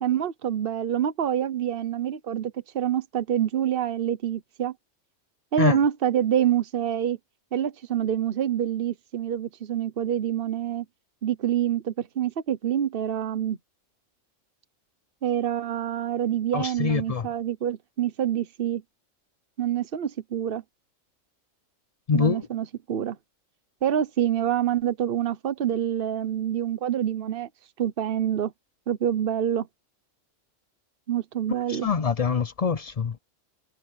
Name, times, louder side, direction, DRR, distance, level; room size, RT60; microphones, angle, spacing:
voice 1, 0.0-4.7 5.5-7.2 7.5-10.8 11.2-13.6 15.2-18.8 19.6-20.6 22.1-23.2 23.8-27.5 27.8-28.5 28.9-29.7 31.1-31.9, right 10 dB, 45° right, 1.1 m, -26 dB
voice 2, 16.5-17.3 22.1-22.5 31.7-33.2, left 5 dB, 50° left, 0.4 m, -24 dB
omnidirectional pair, 1.4 m